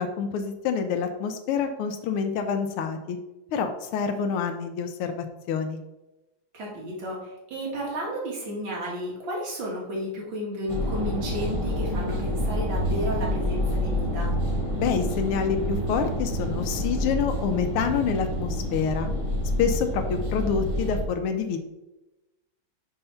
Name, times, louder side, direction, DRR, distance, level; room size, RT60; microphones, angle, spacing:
voice 1, 0.0-3.2 3.5-5.8 14.8-19.1 19.6-21.6, left 6 dB, 85° left, 6 dB, 1.6 m, -27 dB
voice 2, 6.5-14.4, equal, 60° right, -3 dB, 2.6 m, -33 dB
sound 1, 10.7-21.0, equal, 25° right, 0.7 m, -28 dB
5.6 x 4.7 x 5.5 m, 0.99 s
omnidirectional pair, 2.4 m